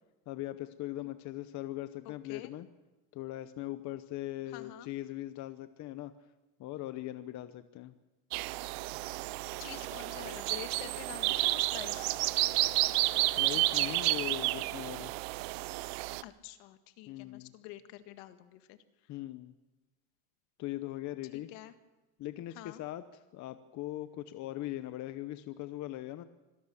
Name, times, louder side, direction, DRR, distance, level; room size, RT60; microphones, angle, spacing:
voice 1, 0.3-2.7 3.1-6.1 6.6-7.9 13.4-15.1 17.1-17.5 19.1-19.5 20.6-21.5 22.2-26.2, left 15 dB, 45° left, 11 dB, 0.9 m, -40 dB
voice 2, 2.1-2.5 4.5-4.9 9.6-12.2 16.2-18.8 21.3-21.7 22.6-22.8, left 14 dB, 70° left, 10 dB, 1.9 m, -47 dB
sound 1, 8.3-16.2, right 20 dB, 70° right, 0.8 m, -31 dB
25.5 x 17.5 x 7.1 m, 1.1 s
cardioid pair, 155°, 42 cm